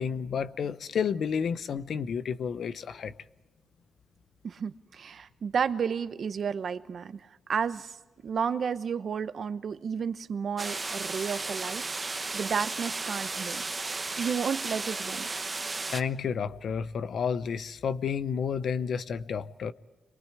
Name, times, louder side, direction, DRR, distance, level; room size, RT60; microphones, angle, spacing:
voice 1, 0.0-3.1 15.9-19.7, left 6 dB, 70° left, 0.8 m, -31 dB
voice 2, 4.4-7.2 7.5-7.9 8.2-11.9 12.3-13.6 14.2-15.3, right 6 dB, 60° right, 0.9 m, -32 dB
sound 1, 10.6-16.0, right 3 dB, 30° right, 1.1 m, -34 dB
27.5 x 23.0 x 4.8 m
cardioid pair, 100°, 0 cm